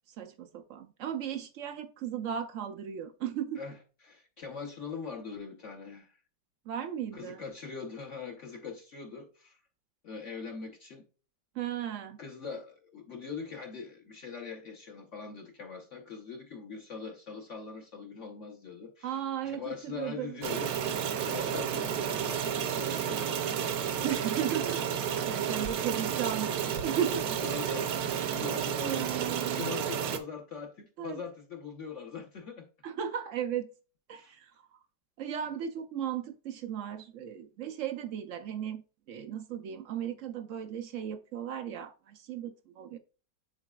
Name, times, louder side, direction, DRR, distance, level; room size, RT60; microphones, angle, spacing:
voice 1, 0.1-3.6 6.7-7.4 11.5-12.2 19.0-20.4 24.0-25.0 25.3-27.3 28.2-29.7 31.0-31.2 32.8-33.7 34.1-34.8 35.2-38.8 39.1-43.0, right 9 dB, 80° right, 0.7 m, -36 dB
voice 2, 3.5-6.2 7.1-9.6 10.0-11.0 12.2-24.1 25.3-25.4 27.4-27.9 28.3-32.7 34.2-34.3, left 5 dB, 50° left, 1.0 m, -42 dB
sound 1, 20.4-30.2, right 8 dB, 65° right, 1.1 m, -31 dB
10.5 x 4.1 x 2.3 m
omnidirectional pair, 2.0 m